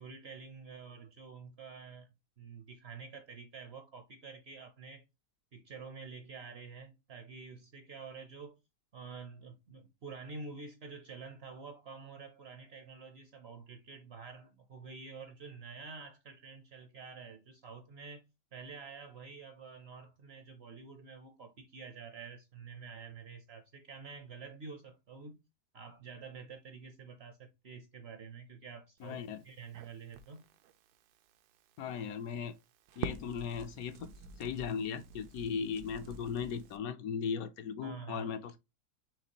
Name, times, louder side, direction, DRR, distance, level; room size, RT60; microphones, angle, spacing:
voice 1, 0.0-2.1 2.4-5.0 5.5-8.6 8.9-18.2 18.5-25.4 25.7-29.2 29.4-30.4 37.8-38.3, right 5 dB, 55° right, 0.7 m, -48 dB
voice 2, 29.0-29.4 31.8-32.5 33.0-34.1 34.4-38.6, left 6 dB, 70° left, 1.0 m, -37 dB
Crackle, 29.0-36.8, right 6 dB, 80° right, 1.1 m, -48 dB
5.1 x 3.4 x 2.9 m
omnidirectional pair, 1.7 m